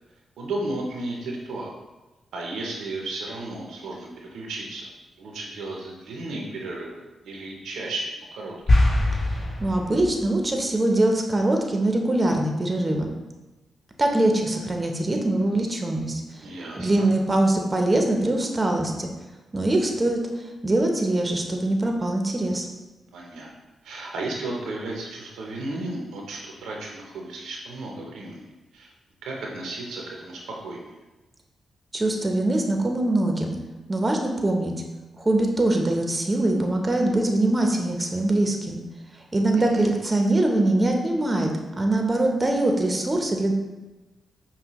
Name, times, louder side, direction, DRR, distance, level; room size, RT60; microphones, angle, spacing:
voice 1, 0.4-1.7 2.3-4.9 5.2-8.5 16.4-17.1 23.1-23.5 23.8-28.4 28.7-28.9 29.2-30.9 39.5-39.9, right 2 dB, 80° right, -1 dB, 0.6 m, -34 dB
sound 1, 8.7-10.3, left 1 dB, 50° left, 1.3 m, -22 dB
voice 2, 9.6-13.1 14.0-16.5 16.8-19.1 19.5-20.2 20.6-22.7 31.9-33.5 33.9-34.7 35.2-38.8 39.3-41.5 41.8-43.5, right 1 dB, 25° right, 2 dB, 0.7 m, -23 dB
5.4 x 2.2 x 3.0 m, 1.1 s
supercardioid pair, 50°, 0 cm